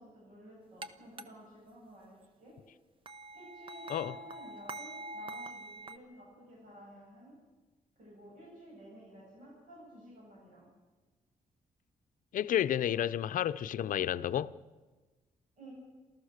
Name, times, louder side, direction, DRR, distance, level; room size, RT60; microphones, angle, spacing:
voice 1, 0.0-2.5 3.3-7.4 8.0-10.7 15.6-15.7, right 1 dB, 60° right, 7.9 m, -53 dB
sound 1, 0.8-0.9 1.2-1.3 3.1-6.0, right 2 dB, 35° right, 0.9 m, -44 dB
voice 2, 12.3-14.5, left 10 dB, 70° left, 0.6 m, -31 dB
28.5 x 14.0 x 6.6 m
wide cardioid pair, 165°, 15 cm